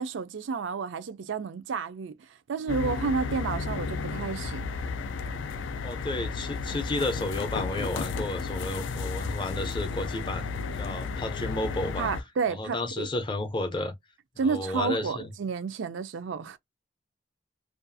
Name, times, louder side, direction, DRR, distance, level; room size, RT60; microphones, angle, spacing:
voice 1, 0.0-2.1 2.5-4.6 12.0-13.1 14.4-16.6, right 5 dB, 90° right, 0.4 m, -31 dB
sound 1, 2.7-12.2, left 4 dB, 85° left, 0.4 m, -33 dB
voice 2, 5.8-10.5 10.8-12.1 12.6-13.9 14.4-15.3, left 2 dB, 25° left, 0.5 m, -32 dB
2.4 x 2.3 x 2.5 m
head